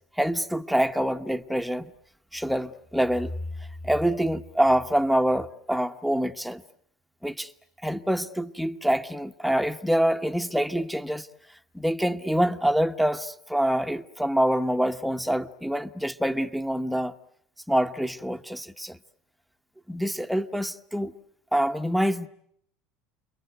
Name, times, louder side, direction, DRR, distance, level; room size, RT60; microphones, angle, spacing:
voice 1, 0.2-1.9 2.3-3.3 3.8-6.6 7.2-7.5 7.8-11.3 11.7-17.1 17.7-19.0 19.9-21.1 21.5-22.3, equal, ahead, 1.1 m, -26 dB
29.5 x 22.5 x 8.0 m
supercardioid pair, 110°, 0 cm